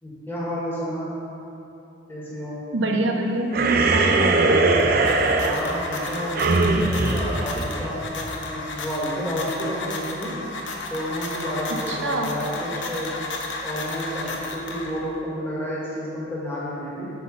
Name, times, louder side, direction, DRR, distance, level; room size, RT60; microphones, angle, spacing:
voice 1, 0.0-1.1 2.1-2.6 5.4-10.3 10.9-13.1 13.6-17.1, equal, 10° left, -8 dB, 1.8 m, -30 dB
voice 2, 2.7-4.6 11.7-12.3, right 2 dB, 75° right, 2 dB, 0.9 m, -25 dB
sound 1, 3.5-8.2, right 3 dB, 50° right, 0.6 m, -21 dB
sound 2, 4.6-15.2, left 2 dB, 75° left, 1.0 m, -33 dB
7.9 x 6.4 x 5.5 m, 2.9 s
head